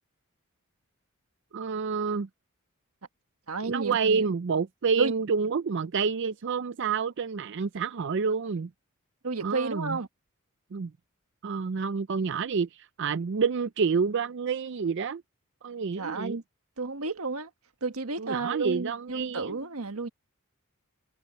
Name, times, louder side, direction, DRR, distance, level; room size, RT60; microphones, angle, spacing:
voice 1, 1.5-2.3 3.6-8.7 9.4-10.0 10.7-10.9 11.4-15.2 15.6-16.4 18.2-19.6, right 5 dB, 55° right, 0.5 m, -28 dB
voice 2, 3.5-4.3 5.0-5.1 9.2-10.1 15.9-16.4 16.8-17.5 17.8-20.1, right 4 dB, 85° right, 1.5 m, -31 dB
head